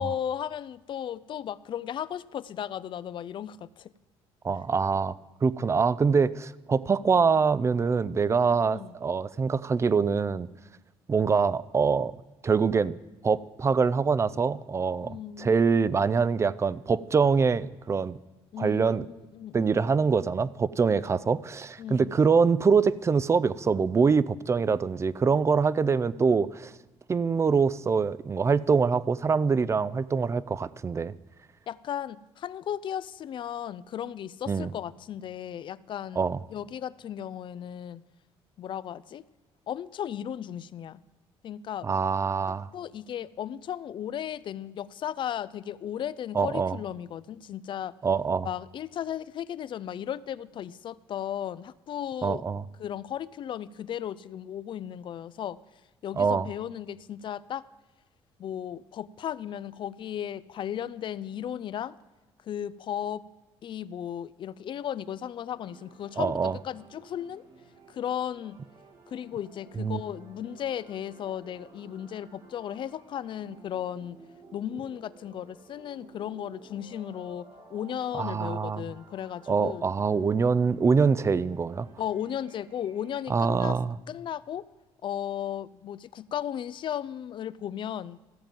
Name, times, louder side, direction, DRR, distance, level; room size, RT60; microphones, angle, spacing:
voice 1, 0.0-3.9 8.4-8.9 15.0-15.5 18.5-19.7 21.0-21.2 21.8-22.1 31.7-38.0 38.6-39.2 39.7-41.0 41.4-41.9 42.7-47.9 48.4-52.4 52.8-55.6 56.0-57.6 58.4-62.0 62.4-63.2 63.6-67.4 67.9-68.6 69.1-74.2 74.5-79.8 82.0-83.8 84.1-84.7 85.0-88.2, left 10 dB, 50° left, 18 dB, 0.4 m, -35 dB
voice 2, 4.4-10.5 11.1-12.1 12.4-13.0 13.2-18.2 18.6-19.1 19.5-26.7 27.1-31.1 34.5-34.7 36.2-36.4 41.8-42.7 46.3-46.8 48.0-48.5 52.2-52.6 56.2-56.5 66.2-66.6 69.8-70.0 78.1-78.9 79.5-81.9 83.3-84.0, right 5 dB, 25° right, 19 dB, 0.4 m, -24 dB
sound 1, 65.5-83.4, right 3 dB, 70° right, 1.7 m, -54 dB
14.0 x 7.4 x 5.2 m, 1.1 s
cardioid pair, 85°, 11 cm